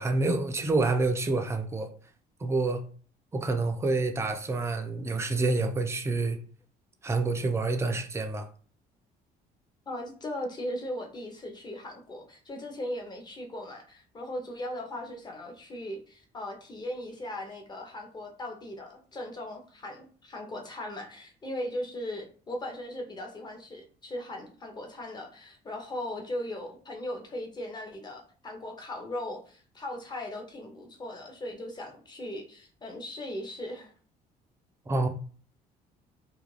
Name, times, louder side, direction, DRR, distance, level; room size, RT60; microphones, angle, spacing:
voice 1, 0.0-1.9 2.4-2.8 3.3-6.4 7.0-8.5 34.9-35.1, right 3 dB, 15° right, 0.4 m, -27 dB
voice 2, 9.9-33.9, left 1 dB, 25° left, 0.7 m, -38 dB
2.4 x 2.1 x 3.1 m
cardioid pair, 110°, 17 cm